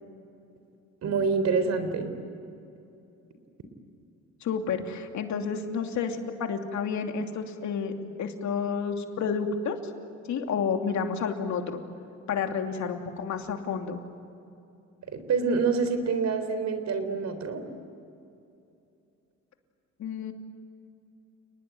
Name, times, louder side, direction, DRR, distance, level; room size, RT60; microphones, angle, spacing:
voice 1, 1.0-2.1 15.1-17.6, right 4 dB, 60° right, 9 dB, 3.8 m, -26 dB
voice 2, 4.4-9.8 10.3-11.8 12.3-14.0 20.0-20.3, left 6 dB, 70° left, 4 dB, 2.8 m, -30 dB
30.0 x 20.0 x 9.3 m, 2.7 s
cardioid pair, 90°, 30 cm